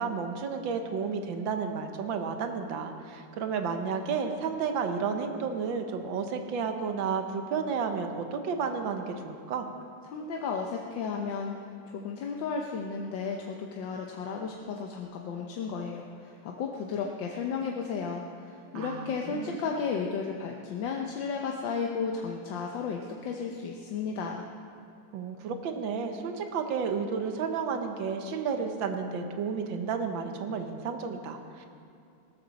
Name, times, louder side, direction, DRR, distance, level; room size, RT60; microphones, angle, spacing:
voice 1, 0.0-9.7 18.7-19.6 25.1-31.7, right 5 dB, 90° right, 6 dB, 1.7 m, -32 dB
voice 2, 10.1-11.5 11.9-24.5, left 5 dB, 80° left, 1 dB, 1.6 m, -34 dB
17.0 x 13.0 x 4.1 m, 2.5 s
omnidirectional pair, 2.0 m